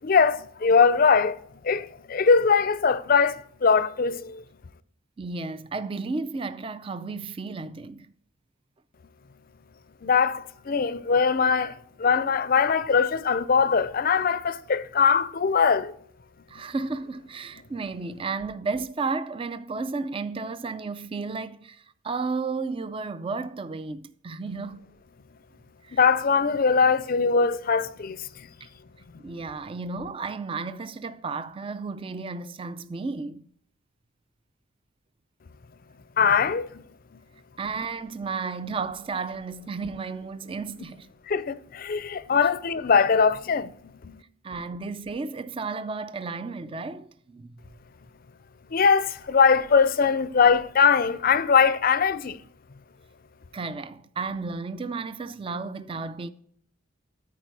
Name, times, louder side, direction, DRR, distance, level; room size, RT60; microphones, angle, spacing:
voice 1, 0.0-1.4 1.6-4.4 10.0-15.9 25.9-28.3 36.2-36.8 41.3-43.7 44.0-44.2 48.7-52.4, left 5 dB, 45° left, 0.5 m, -21 dB
voice 2, 5.2-8.1 16.5-24.9 25.8-26.0 28.6-28.7 29.2-33.5 37.6-41.1 42.4-42.5 44.4-47.5 53.5-56.3, right 4 dB, 25° right, 0.4 m, -33 dB
13.5 x 4.6 x 4.7 m
head